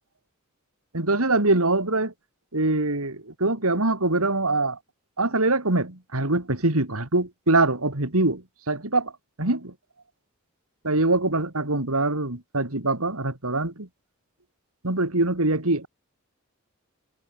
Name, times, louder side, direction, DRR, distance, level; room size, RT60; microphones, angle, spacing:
voice 1, 0.9-2.1 2.5-4.8 5.2-9.1 9.4-9.7 10.8-13.9 14.8-15.9, right 2 dB, 85° right, 3.7 m, -23 dB
head